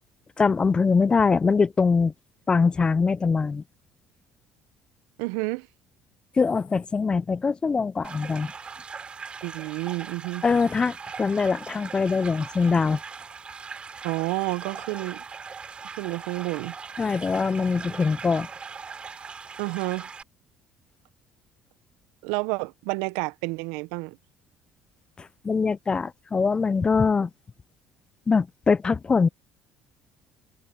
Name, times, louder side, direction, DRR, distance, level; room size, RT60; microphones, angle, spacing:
voice 1, 0.4-2.1 2.5-3.6 6.4-8.5 10.4-13.0 17.0-18.5 25.4-27.3 28.3-29.3, left 5 dB, 30° left, 0.6 m, -23 dB
voice 2, 5.2-5.7 9.4-10.4 14.0-15.2 15.8-16.7 19.6-20.1 22.2-24.2, right 25 dB, 75° right, 1.4 m, -30 dB
sound 1, 8.0-20.2, right 5 dB, 35° right, 3.4 m, -40 dB
hypercardioid pair, 60°, 3 cm